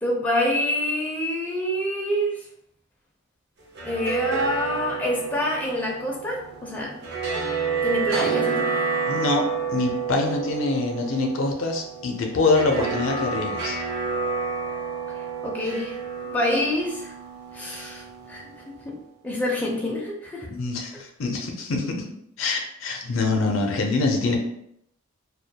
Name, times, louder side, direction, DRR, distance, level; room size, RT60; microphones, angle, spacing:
voice 1, 0.0-2.3 3.8-7.0 7.8-8.7 15.4-16.0 16.3-17.1 17.5-18.4 18.8-19.0 19.2-20.5, left 1 dB, 10° left, -3 dB, 0.4 m, -26 dB
sound 1, 3.6-18.8, right 5 dB, 60° right, 0.6 m, -29 dB
voice 2, 9.1-13.8 20.5-22.0 22.4-24.4, left 3 dB, 70° left, 2 dB, 0.5 m, -25 dB
2.2 x 2.1 x 2.7 m, 0.75 s
head